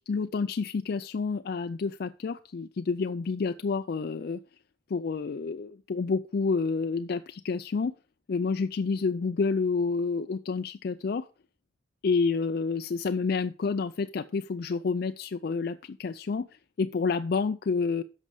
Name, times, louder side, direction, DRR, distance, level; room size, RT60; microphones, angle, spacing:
voice 1, 0.1-4.4 4.9-7.9 8.3-11.3 12.0-16.5 16.8-18.0, left 4 dB, 55° left, 0.4 m, -29 dB
11.0 x 6.4 x 4.8 m
head